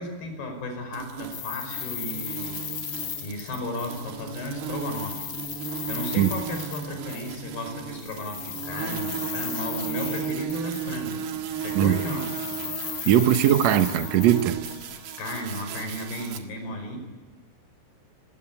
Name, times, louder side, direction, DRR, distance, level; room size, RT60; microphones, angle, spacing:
voice 1, 0.0-2.6 3.0-5.3 5.7-11.2 11.6-12.3 15.2-17.0, left 1 dB, 85° left, 7.4 m, -34 dB
sound 1, 0.9-16.4, right 8 dB, 85° right, 3.8 m, -35 dB
sound 2, 1.3-4.3 4.6-7.4 8.0-11.2 11.5-15.4, left 12 dB, 65° left, 2.3 m, -37 dB
voice 2, 13.0-14.6, right 11 dB, 70° right, 1.7 m, -20 dB
27.5 x 20.0 x 8.6 m
omnidirectional pair, 4.5 m